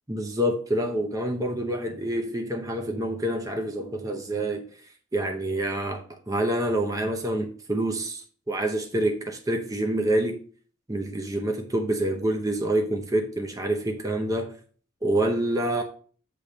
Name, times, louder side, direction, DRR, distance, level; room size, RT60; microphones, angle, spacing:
voice 1, 0.1-4.6 5.1-10.4 10.9-14.5 15.0-15.8, right 1 dB, 15° right, 0.7 m, -27 dB
8.5 x 3.2 x 5.0 m
head